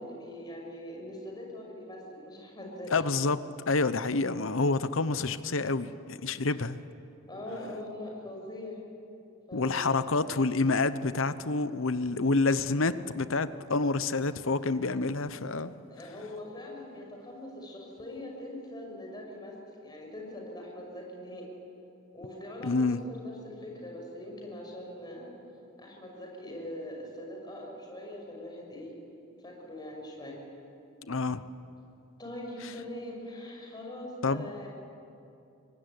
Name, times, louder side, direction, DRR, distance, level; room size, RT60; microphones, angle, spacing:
voice 1, 0.0-2.9 7.3-8.8 9.5-10.0 15.9-19.5 19.8-21.4 22.1-25.3 25.8-28.9 29.4-30.4 32.2-34.7, left 1 dB, 20° left, -1 dB, 6.1 m, -42 dB
voice 2, 2.9-3.4 3.7-6.8 9.5-15.7 22.6-23.0 31.1-31.4 34.2-34.5, left 3 dB, 70° left, 13 dB, 0.9 m, -28 dB
24.5 x 19.0 x 9.8 m, 2.8 s
head